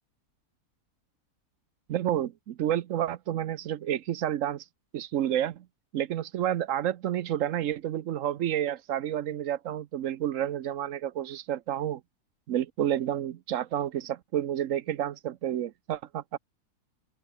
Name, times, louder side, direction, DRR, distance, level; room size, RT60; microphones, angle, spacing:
voice 1, 1.9-4.6 4.9-5.7 5.9-12.0 12.5-16.4, right 11 dB, 65° right, 1.0 m, -30 dB
open air
omnidirectional pair, 1.7 m